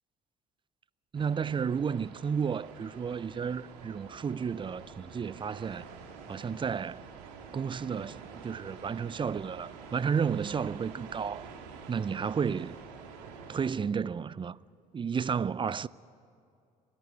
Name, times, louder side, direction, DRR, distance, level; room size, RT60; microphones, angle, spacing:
voice 1, 1.1-5.9 6.3-7.1 7.5-11.5 11.9-12.8 13.5-14.6 14.9-15.9, right 6 dB, 25° right, 0.5 m, -32 dB
sound 1, 1.1-13.7, right 5 dB, 80° right, 2.4 m, -47 dB
30.0 x 11.5 x 9.5 m
hypercardioid pair, 55°, 20 cm